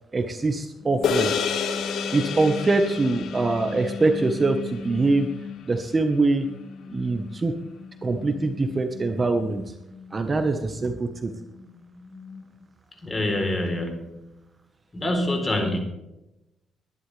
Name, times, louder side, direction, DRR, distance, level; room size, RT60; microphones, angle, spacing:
voice 1, 0.1-1.3 2.1-5.3 5.7-6.5 6.9-7.5 8.0-9.6 10.1-11.3, right 3 dB, 30° right, 6 dB, 1.3 m, -23 dB
sound 1, 0.8-6.1 6.4-12.7, left 4 dB, 40° left, 4.7 m, -38 dB
sound 2, 1.0-5.6, left 6 dB, 75° left, 1.7 m, -30 dB
voice 2, 13.0-14.3 14.9-15.8, left 1 dB, 25° left, 4 dB, 3.8 m, -26 dB
20.5 x 11.5 x 3.4 m, 0.91 s
cardioid pair, 90°, 0 cm